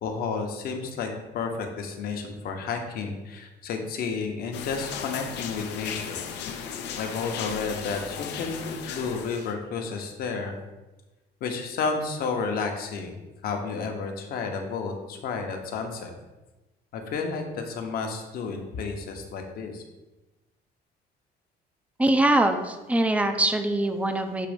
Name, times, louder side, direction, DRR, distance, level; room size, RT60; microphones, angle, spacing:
voice 1, 0.0-6.2 6.9-10.6 11.4-16.1 16.9-19.8, left 4 dB, 60° left, 4 dB, 0.9 m, -31 dB
sound 1, 4.5-9.5, left 7 dB, 90° left, 0.6 m, -36 dB
voice 2, 22.0-24.5, right 1 dB, 10° right, 7 dB, 0.4 m, -23 dB
6.7 x 3.0 x 5.0 m, 1.1 s
cardioid pair, 165°, 17 cm